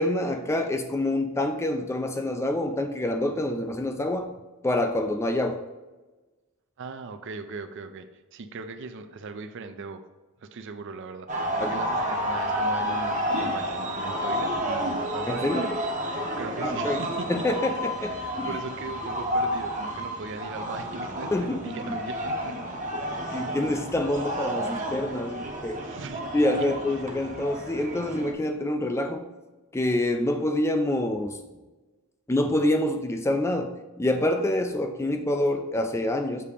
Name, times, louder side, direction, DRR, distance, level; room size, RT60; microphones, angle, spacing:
voice 1, 0.0-4.3 4.6-5.6 11.6-11.7 15.3-15.7 16.6-17.0 17.3-18.5 21.3-22.0 23.3-25.8 26.3-29.3 29.7-31.4 32.3-36.4, left 1 dB, 10° left, 5 dB, 0.3 m, -26 dB
voice 2, 6.8-10.0 10.4-15.7 16.4-17.4 18.2-22.6 25.8-26.2 26.5-26.7, right 4 dB, 55° right, 9 dB, 0.4 m, -39 dB
sound 1, 11.3-28.3, equal, 35° right, 0.8 m, -30 dB
6.8 x 2.8 x 4.9 m, 1.2 s
head